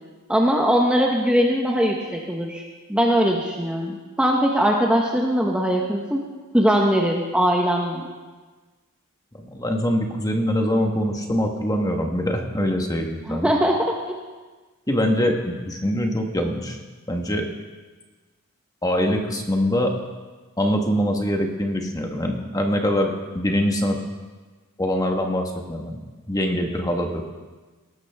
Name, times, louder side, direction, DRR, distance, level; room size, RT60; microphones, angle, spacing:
voice 1, 0.3-2.6 2.9-6.2 6.5-8.1 13.3-14.1, equal, 5° right, -1 dB, 1.0 m, -21 dB
voice 2, 9.4-13.5 14.9-16.8 17.1-17.5 18.8-20.0 20.6-24.0 24.8-26.0 26.3-27.3, equal, 15° left, 2 dB, 1.3 m, -23 dB
18.5 x 14.5 x 3.5 m, 1.3 s
head